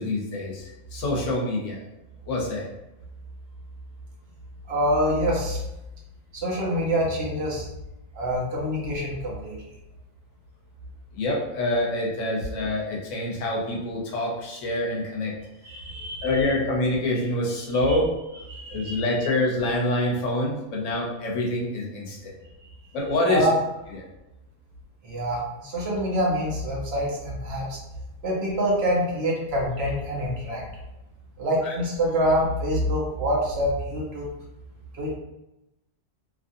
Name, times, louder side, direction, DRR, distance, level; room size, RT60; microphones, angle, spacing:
voice 1, 0.0-1.8 2.3-2.7 11.1-15.3 16.2-18.1 18.7-22.3 22.9-23.5 23.9-24.0 31.6-31.8, left 1 dB, 75° left, -2 dB, 1.1 m, -26 dB
voice 2, 4.7-5.6 6.3-7.7 8.1-9.6 15.6-16.3 17.9-18.0 18.5-19.0 23.3-23.6 25.0-27.8 28.2-30.6 31.4-34.3 34.9-35.2, equal, 60° right, -3 dB, 0.9 m, -26 dB
2.8 x 2.5 x 2.6 m, 0.94 s
omnidirectional pair, 1.3 m